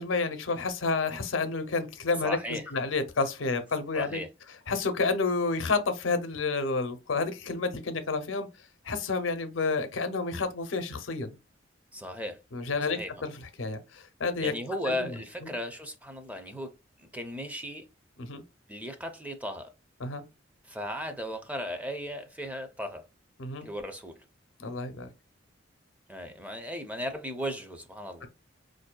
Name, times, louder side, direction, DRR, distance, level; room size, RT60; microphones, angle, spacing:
voice 1, 0.0-4.2 4.7-8.5 8.8-11.4 12.5-13.3 13.6-14.5 14.9-15.2 18.2-18.4 20.0-20.2 23.4-23.7 24.6-25.1 28.2-28.3, left 4 dB, 85° left, 0.6 m, -30 dB
voice 2, 2.2-2.7 3.9-4.3 11.9-12.4 12.8-13.1 14.4-16.7 17.0-17.8 18.7-19.7 20.6-23.1 23.6-24.2 26.1-28.3, equal, 10° right, 0.5 m, -36 dB
4.3 x 2.6 x 2.2 m
head